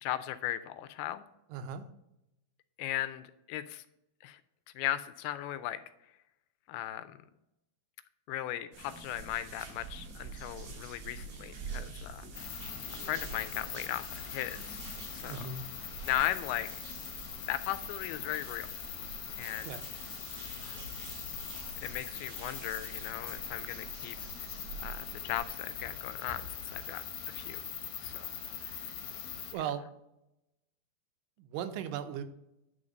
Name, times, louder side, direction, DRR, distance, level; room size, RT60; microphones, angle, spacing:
voice 1, 0.0-1.2 2.8-3.8 4.2-4.4 4.8-5.8 6.7-7.1 8.3-12.2 13.0-14.8 15.1-15.5 16.1-16.8 17.5-18.7 19.4-19.7 20.6-20.8 21.8-24.2 24.8-26.4 26.7-27.0 27.3-27.6 28.0-28.3, left 13 dB, 85° left, 12 dB, 2.4 m, -37 dB
voice 2, 1.5-1.9 15.2-15.7 19.6-19.9 29.5-29.9 31.4-32.2, right 8 dB, 90° right, 9 dB, 2.8 m, -37 dB
sound 1, 8.7-25.5, right 4 dB, 30° right, 2.9 m, -48 dB
sound 2, 8.7-26.6, right 5 dB, 65° right, 3.3 m, -54 dB
sound 3, 12.3-29.5, left 8 dB, 70° left, 1.9 m, -42 dB
10.0 x 4.2 x 5.1 m, 0.86 s
omnidirectional pair, 4.6 m